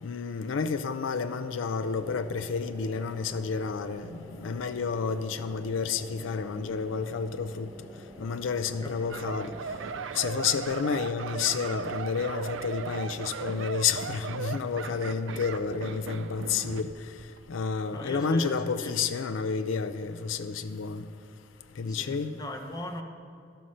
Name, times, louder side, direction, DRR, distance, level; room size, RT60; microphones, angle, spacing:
voice 1, 0.0-7.7 8.2-9.5 10.2-16.9 17.5-21.1 21.8-22.4, left 5 dB, 85° left, 11 dB, 0.4 m, -30 dB
sound 1, 1.7-10.1, equal, 15° right, 0.9 m, -48 dB
sound 2, 9.1-16.9 17.2-17.4, right 5 dB, 75° right, 0.5 m, -37 dB
voice 2, 17.9-18.9 21.9-23.0, left 1 dB, 20° left, 2 dB, 0.9 m, -39 dB
12.5 x 5.7 x 6.3 m, 2.3 s
head